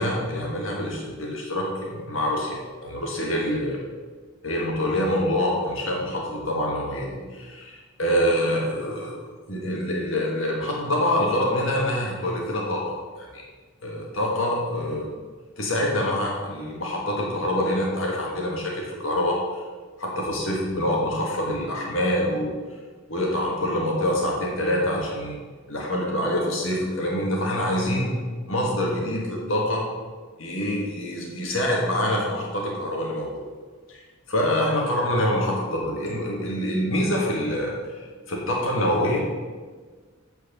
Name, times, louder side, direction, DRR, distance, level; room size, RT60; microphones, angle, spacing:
voice 1, 0.0-3.7 4.4-9.2 9.5-13.4 13.8-15.1 15.6-19.6 20.0-22.5 23.1-25.4 25.7-28.1 28.5-29.8 30.4-33.4 33.9-34.0 34.3-38.0 38.3-39.2, left 1 dB, 75° left, -2 dB, 1.7 m, -25 dB
8.5 x 4.6 x 6.8 m, 1.4 s
head